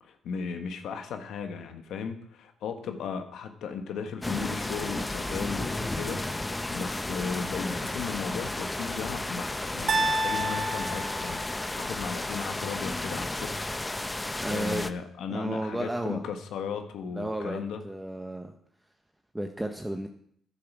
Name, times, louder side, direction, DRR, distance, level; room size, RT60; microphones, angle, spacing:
voice 1, 0.0-13.7 14.5-17.8, left 6 dB, 80° left, 6 dB, 1.4 m, -36 dB
sound 1, 4.2-14.9, left 2 dB, 15° left, 0.6 m, -33 dB
sound 2, 9.9-12.0, right 1 dB, 50° right, 1.3 m, -30 dB
voice 2, 14.4-14.9 15.3-16.2 17.1-18.5 19.3-20.1, right 1 dB, 10° right, 4 dB, 0.9 m, -33 dB
10.0 x 8.6 x 6.2 m, 0.67 s
cardioid pair, 90°, 0 cm